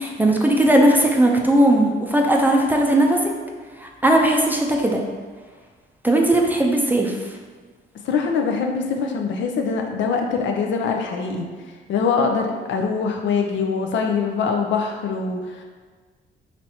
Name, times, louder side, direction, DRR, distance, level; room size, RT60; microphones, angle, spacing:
voice 1, 0.0-3.2 3.8-5.0 6.0-7.1, right 1 dB, 10° right, 0 dB, 0.5 m, -18 dB
voice 2, 8.0-11.5 11.9-15.6, left 5 dB, 70° left, 3 dB, 0.5 m, -23 dB
4.1 x 3.2 x 2.8 m, 1.5 s
cardioid pair, 90°, 20 cm